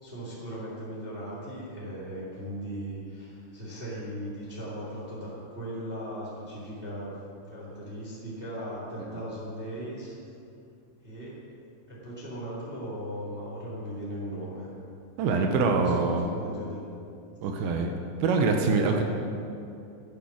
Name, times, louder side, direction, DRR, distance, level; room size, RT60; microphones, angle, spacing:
voice 1, 0.0-7.2 7.5-10.2 11.0-11.4 11.9-14.7 15.3-16.8, equal, 20° right, -6 dB, 1.7 m, -38 dB
voice 2, 15.2-16.3 17.4-17.9 18.2-19.0, right 4 dB, 75° right, 3 dB, 2.8 m, -24 dB
10.5 x 10.5 x 6.2 m, 2.6 s
omnidirectional pair, 6.0 m